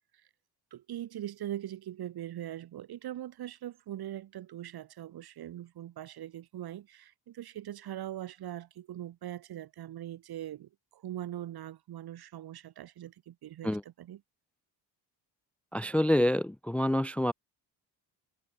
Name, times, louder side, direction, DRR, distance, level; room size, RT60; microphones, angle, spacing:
voice 1, 0.7-14.2, right 12 dB, 60° right, 7.7 m, -41 dB
voice 2, 15.7-17.3, left 1 dB, 5° left, 0.6 m, -27 dB
cardioid pair, 165°, 41 cm